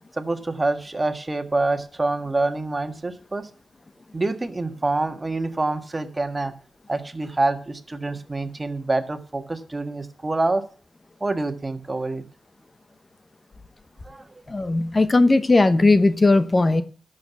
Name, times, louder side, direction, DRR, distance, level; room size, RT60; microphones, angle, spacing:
voice 1, 0.2-3.5 4.1-6.5 6.9-10.6 11.2-12.2 14.0-14.3, right 2 dB, 30° right, 8 dB, 1.7 m, -26 dB
voice 2, 14.5-16.8, left 2 dB, 35° left, 13 dB, 1.0 m, -17 dB
12.0 x 6.8 x 7.0 m, 0.42 s
supercardioid pair, 45°, 0 cm